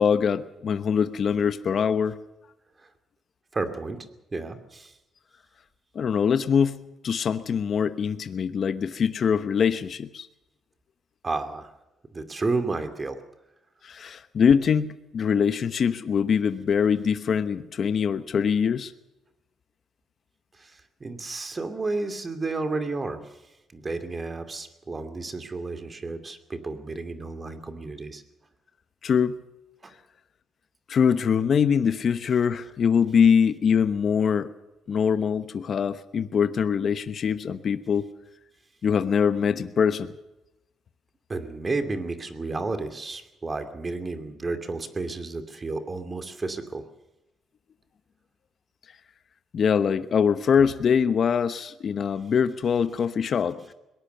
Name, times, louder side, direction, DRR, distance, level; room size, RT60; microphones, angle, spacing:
voice 1, 0.0-2.2 5.9-10.3 13.8-18.9 29.0-29.4 30.9-34.5 34.9-38.0 38.8-40.1 49.5-53.7, left 7 dB, 55° left, 11 dB, 1.0 m, -23 dB
voice 2, 3.5-4.0 4.3-4.9 11.2-11.7 12.1-13.2 20.6-23.3 23.7-28.2 29.8-29.9 41.3-46.8, right 3 dB, 30° right, 8 dB, 2.7 m, -32 dB
22.0 x 18.5 x 6.8 m, 0.95 s
cardioid pair, 90°, 0 cm